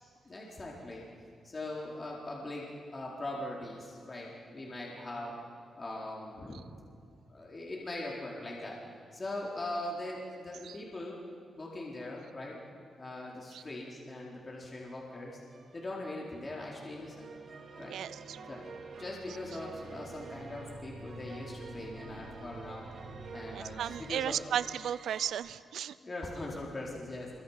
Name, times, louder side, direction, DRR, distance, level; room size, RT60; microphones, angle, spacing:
voice 1, 0.2-1.0 1.4-5.4 5.8-6.6 7.3-8.8 9.1-12.6 13.0-15.4 15.7-17.3 17.8-17.9 18.5-18.7 19.0-22.9 23.3-24.4 26.0-27.3, left 1 dB, 30° left, -3 dB, 4.3 m, -41 dB
sound 1, 15.5-25.3, right 3 dB, 60° right, 2.7 m, -48 dB
voice 2, 17.9-18.4 23.5-25.9, right 9 dB, 85° right, 17 dB, 0.6 m, -35 dB
26.0 x 24.0 x 6.0 m, 2.4 s
cardioid pair, 100°, 0 cm